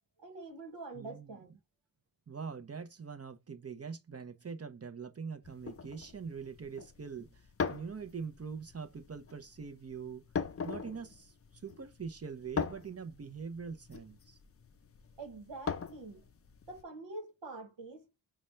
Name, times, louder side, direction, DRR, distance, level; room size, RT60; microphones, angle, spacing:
voice 1, 0.2-1.6 15.2-16.3 16.7-18.2, right 3 dB, 85° right, 1.0 m, -46 dB
voice 2, 0.9-1.4 2.3-10.2 10.6-14.4, right 5 dB, 35° right, 0.6 m, -43 dB
sound 1, 5.4-16.8, left 6 dB, 35° left, 0.5 m, -41 dB
4.1 x 2.2 x 3.1 m
cardioid pair, 40°, 43 cm